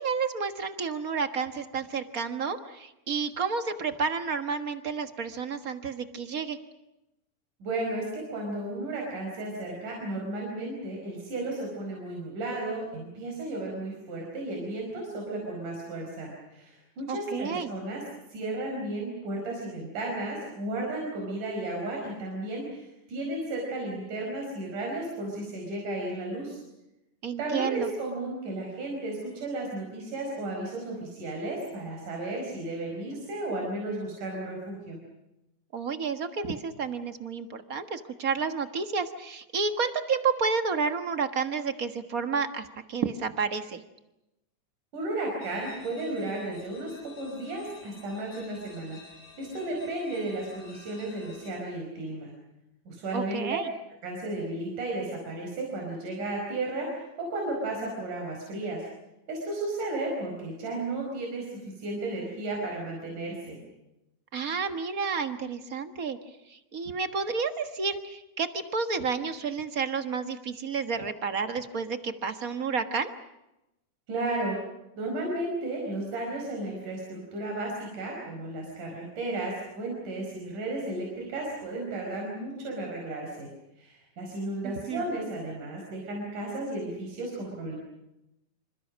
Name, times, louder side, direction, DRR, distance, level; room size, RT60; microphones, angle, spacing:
voice 1, 0.0-6.6 17.1-17.7 27.2-27.9 35.7-43.8 53.1-53.7 64.3-66.2 66.5-73.1 84.6-85.0, right 5 dB, 45° right, 8 dB, 1.2 m, -30 dB
voice 2, 7.6-18.0 18.3-26.6 27.4-35.0 44.9-49.0 49.4-52.3 52.9-53.4 54.0-58.8 59.3-63.6 74.1-74.6 75.0-83.5 83.8-87.8, right 2 dB, 80° right, -1 dB, 6.5 m, -34 dB
sound 1, 45.4-51.5, left 4 dB, 80° left, 8.2 m, -52 dB
27.0 x 27.0 x 6.3 m, 0.90 s
omnidirectional pair, 3.6 m